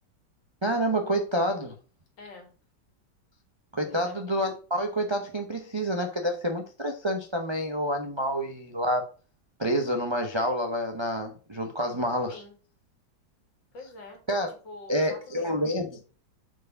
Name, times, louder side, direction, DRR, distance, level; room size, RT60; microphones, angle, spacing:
voice 1, 0.6-1.7 3.7-9.1 9.6-12.3 14.3-14.5 14.9-16.0, equal, 30° right, 3 dB, 0.5 m, -28 dB
voice 2, 2.2-2.5 3.9-4.2 12.3-12.6 13.7-14.2 14.5-15.5, left 2 dB, 70° left, 2 dB, 2.8 m, -45 dB
6.2 x 4.6 x 5.2 m, 0.35 s
omnidirectional pair, 2.0 m